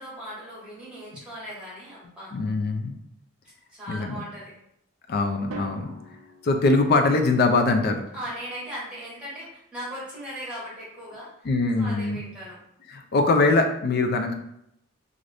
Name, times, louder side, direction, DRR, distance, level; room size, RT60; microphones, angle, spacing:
voice 1, 0.0-2.3 3.7-4.5 8.1-11.5 11.8-12.6, equal, 5° right, -7 dB, 1.1 m, -38 dB
voice 2, 2.3-2.9 3.9-4.2 5.1-5.9 6.4-8.0 11.4-12.2 12.9-14.3, left 3 dB, 50° left, 5 dB, 0.3 m, -22 dB
Drum, 5.5-7.5, right 4 dB, 85° right, 0.4 m, -42 dB
2.5 x 2.5 x 3.3 m, 0.77 s
head